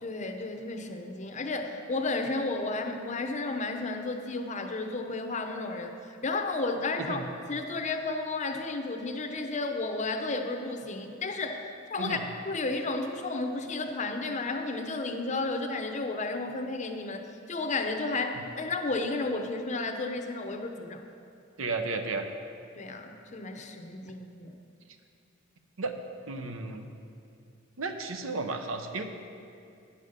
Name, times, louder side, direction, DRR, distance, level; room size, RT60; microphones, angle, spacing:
voice 1, 0.0-5.9 6.2-7.2 7.5-11.6 11.9-12.2 12.5-21.0 22.8-24.5, left 3 dB, 35° left, 5 dB, 0.7 m, -32 dB
voice 2, 21.6-22.3 25.8-26.0 26.3-26.9 27.8-29.0, right 3 dB, 70° right, 6 dB, 0.7 m, -33 dB
9.5 x 5.6 x 6.6 m, 2.5 s
head